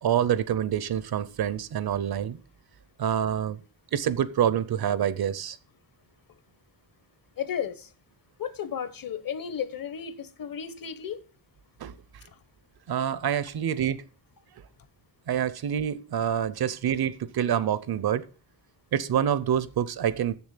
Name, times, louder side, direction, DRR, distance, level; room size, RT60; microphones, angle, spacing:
voice 1, 0.0-2.4 3.0-3.6 3.9-5.6 11.8-11.9 12.9-14.0 15.3-18.2 18.9-20.3, right 9 dB, 55° right, 0.7 m, -26 dB
voice 2, 7.4-7.9 8.4-11.2, left 8 dB, 50° left, 1.1 m, -33 dB
7.3 x 7.1 x 8.1 m
wide cardioid pair, 180°, 45 cm